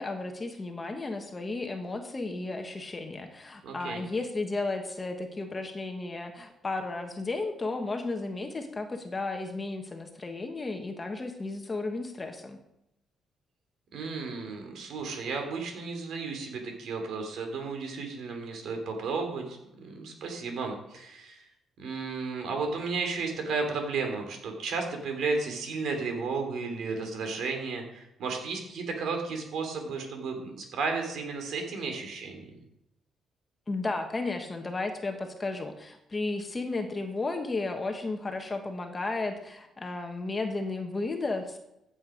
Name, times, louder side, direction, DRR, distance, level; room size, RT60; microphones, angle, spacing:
voice 1, 0.0-12.6 33.7-41.6, left 3 dB, 20° left, 4 dB, 1.3 m, -33 dB
voice 2, 3.6-4.0 13.9-21.5 21.8-32.4, right 4 dB, 65° right, 4 dB, 3.2 m, -33 dB
15.0 x 8.1 x 5.1 m, 0.86 s
cardioid pair, 135°, 0 cm